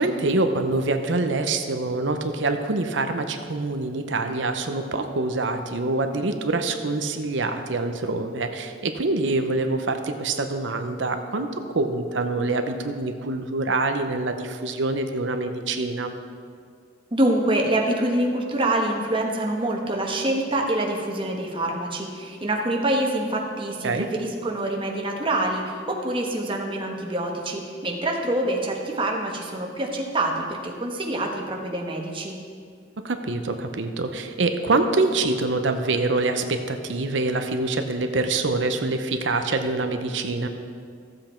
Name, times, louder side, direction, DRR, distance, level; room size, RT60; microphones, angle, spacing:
voice 1, 0.0-16.1 23.8-24.1 33.0-40.5, right 3 dB, 80° right, 7 dB, 0.8 m, -25 dB
voice 2, 17.1-32.4, right 1 dB, 30° right, 0 dB, 1.3 m, -26 dB
14.0 x 7.8 x 4.4 m, 2.2 s
head